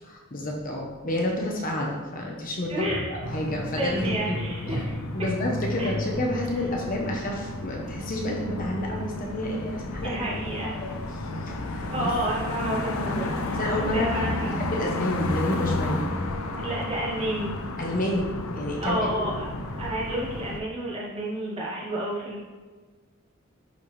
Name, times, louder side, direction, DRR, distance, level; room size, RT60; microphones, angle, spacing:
voice 1, 0.1-4.8 5.1-10.9 11.4-12.1 13.6-16.0 17.8-19.3, left 1 dB, 40° left, -1 dB, 1.1 m, -30 dB
voice 2, 2.7-3.4 3.7-5.0 5.8-6.0 10.0-10.8 11.9-13.6 13.9-14.6 16.6-17.5 18.8-19.5 19.8-22.4, right 1 dB, 25° right, -5 dB, 1.7 m, -30 dB
sound 1, 3.2-20.6, left 2 dB, 85° left, 0.7 m, -32 dB
10.5 x 4.4 x 3.4 m, 1.4 s
head